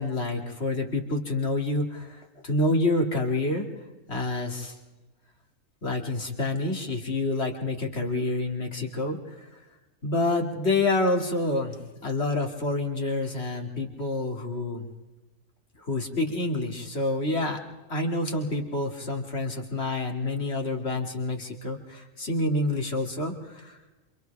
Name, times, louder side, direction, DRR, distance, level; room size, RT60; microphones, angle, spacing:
voice 1, 0.0-3.7 4.1-4.8 5.8-9.5 10.0-11.8 12.0-14.9 15.8-17.6 17.9-23.8, left 2 dB, 55° left, 2 dB, 2.8 m, -28 dB
29.0 x 27.0 x 3.5 m, 1.1 s
omnidirectional pair, 1.3 m